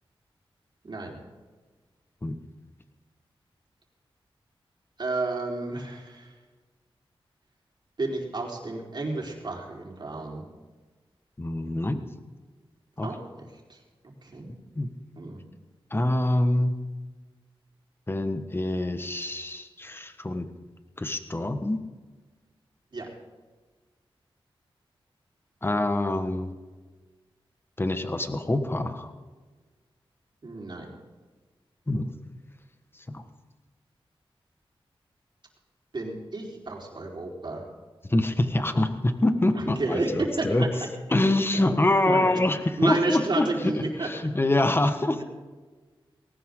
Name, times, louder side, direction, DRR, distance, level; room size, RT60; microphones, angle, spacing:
voice 1, 0.8-1.2 5.0-6.3 8.0-10.4 13.0-13.8 14.2-14.5 15.1-15.4 22.9-23.1 30.4-30.9 35.9-37.6 39.5-40.7 41.2-41.3 41.5-41.6 42.0-42.3 42.8-44.1 45.2-45.3, right 2 dB, 50° right, -1 dB, 4.5 m, -31 dB
voice 2, 11.4-12.0 13.0-13.1 14.7-14.9 15.9-16.8 18.1-20.5 21.0-21.8 25.6-26.6 27.8-29.1 31.9-32.1 33.1-33.2 38.1-40.7 41.1-43.7 44.0-45.2, left 1 dB, 25° left, 8 dB, 1.5 m, -25 dB
19.5 x 18.5 x 3.9 m, 1.4 s
wide cardioid pair, 80°, 10 cm